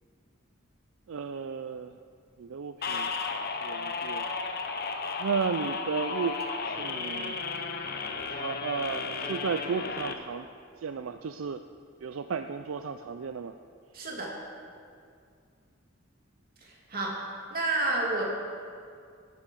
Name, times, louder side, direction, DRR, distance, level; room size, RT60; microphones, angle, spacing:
voice 1, 1.1-2.0 2.4-3.2 3.6-4.3 5.2-6.4 6.6-7.4 8.3-10.5 10.8-11.6 12.0-13.5, right 5 dB, 75° right, 8 dB, 0.4 m, -33 dB
sound 1, 2.8-10.1, left 4 dB, 50° left, 0.9 m, -34 dB
voice 2, 13.9-14.3 16.6-17.2 17.5-18.2, right 2 dB, 45° right, -2 dB, 2.5 m, -30 dB
14.0 x 9.9 x 5.3 m, 2.2 s
head